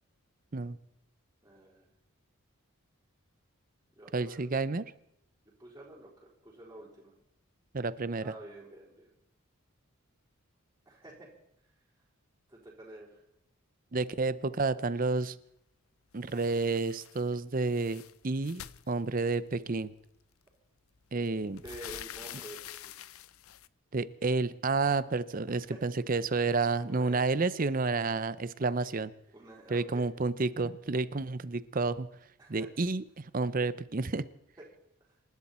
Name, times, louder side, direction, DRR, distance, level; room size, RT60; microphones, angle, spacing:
voice 1, 1.4-1.9 3.9-4.5 5.6-7.1 8.2-9.1 10.8-11.3 12.5-13.2 21.5-23.0 25.5-25.8 26.9-27.2 29.3-30.0 32.4-32.7 34.6-34.7, right 1 dB, 15° right, -9 dB, 4.6 m, -49 dB
voice 2, 4.1-4.8 7.7-8.3 13.9-15.4 16.1-18.6 18.9-19.9 21.1-21.6 23.9-29.1 29.7-32.1 32.5-34.3, right 3 dB, 40° right, 15 dB, 0.6 m, -30 dB
sound 1, 16.3-17.3 17.6-19.5 20.5-20.6 21.0-23.7, left 11 dB, 80° left, 0.6 m, -47 dB
27.0 x 12.0 x 4.4 m, 0.76 s
head